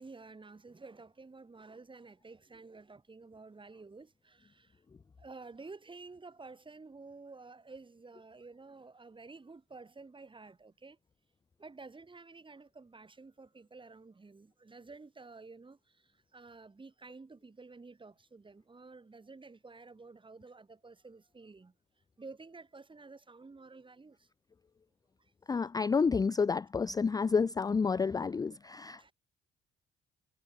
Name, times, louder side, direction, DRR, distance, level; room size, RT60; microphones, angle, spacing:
voice 1, 0.0-4.8 5.2-11.0 11.6-21.7 22.2-24.3 29.0-29.1, right 3 dB, 25° right, 5.2 m, -51 dB
voice 2, 25.5-29.1, left 5 dB, 20° left, 0.4 m, -29 dB
cardioid pair, 90°, 20 cm